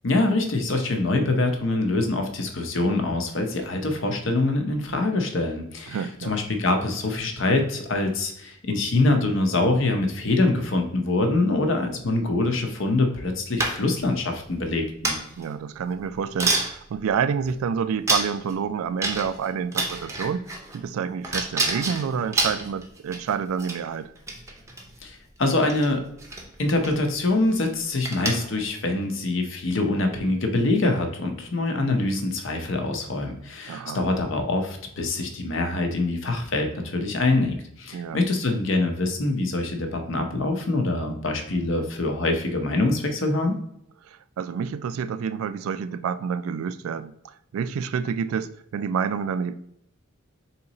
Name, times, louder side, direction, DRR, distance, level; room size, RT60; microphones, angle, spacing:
voice 1, 0.0-15.2 25.0-26.0 26.6-43.5, left 2 dB, 65° left, 0.8 m, -24 dB
voice 2, 5.9-6.4 15.4-24.1 33.7-34.0 37.9-38.2 44.1-49.6, right 6 dB, 85° right, 0.3 m, -28 dB
sound 1, 13.6-14.1 15.0-15.4 16.0-16.1 16.4-16.7 17.4-17.5 18.1-18.5 19.0-19.4 19.7-20.8 21.2-23.3 23.6-23.8 24.2-24.9 25.6-25.9 26.2-26.5 26.8-27.0 27.3-27.6 28.1-28.6, right 2 dB, 15° right, 0.6 m, -27 dB
3.8 x 2.9 x 3.9 m
head